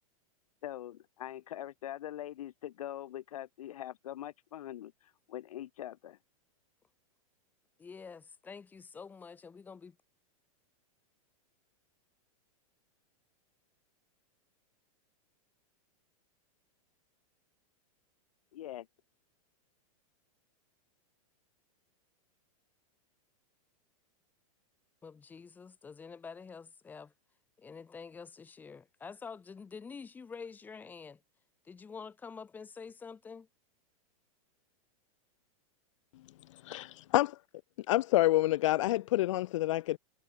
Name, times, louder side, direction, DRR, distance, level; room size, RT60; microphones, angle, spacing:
voice 1, 0.6-4.9 5.3-6.2 18.5-18.9, left 12 dB, 75° left, 2.3 m, -42 dB
voice 2, 7.8-10.0 25.0-27.1 27.6-31.2 31.6-33.5, left 5 dB, 10° left, 1.4 m, -47 dB
voice 3, 36.6-37.4 37.9-40.0, left 16 dB, 60° left, 0.6 m, -28 dB
supercardioid pair, 165°, 19 cm